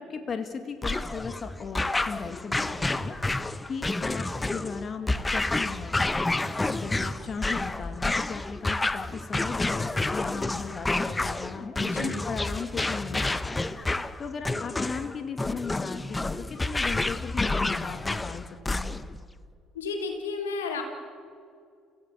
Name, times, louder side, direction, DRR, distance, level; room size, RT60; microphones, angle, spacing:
voice 1, 0.0-3.2 3.7-6.2 6.6-11.8 12.2-13.8 14.2-18.4 18.7-19.0, left 5 dB, 40° left, 8 dB, 2.1 m, -37 dB
sound 1, 0.8-19.2, left 2 dB, 15° left, 1.0 m, -29 dB
voice 2, 11.8-12.2 19.7-20.8, left 4 dB, 85° left, 4 dB, 2.7 m, -32 dB
29.5 x 16.5 x 8.6 m, 2.3 s
hypercardioid pair, 55°, 0 cm